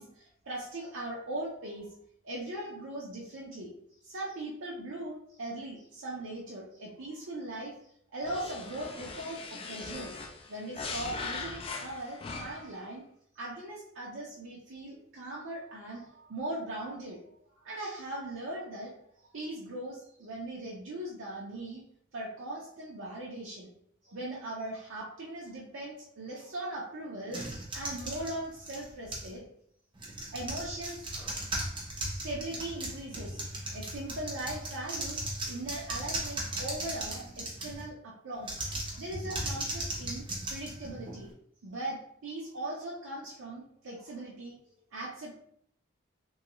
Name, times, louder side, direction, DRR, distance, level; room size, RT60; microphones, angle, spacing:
voice 1, 0.0-1.9 2.2-3.7 4.0-7.7 8.1-13.0 13.4-17.2 17.6-18.9 19.3-21.8 22.1-23.7 24.0-27.4 27.7-29.4 30.3-31.0 32.1-38.6 39.0-41.3 41.6-45.4, right 1 dB, 65° right, -4 dB, 0.6 m, -39 dB
sound 1, 8.2-12.8, left 4 dB, 25° left, 0.3 m, -40 dB
sound 2, 27.3-29.4 29.9-37.9 38.4-41.3, right 1 dB, 25° right, 0.6 m, -37 dB
3.1 x 2.3 x 3.0 m, 0.67 s
head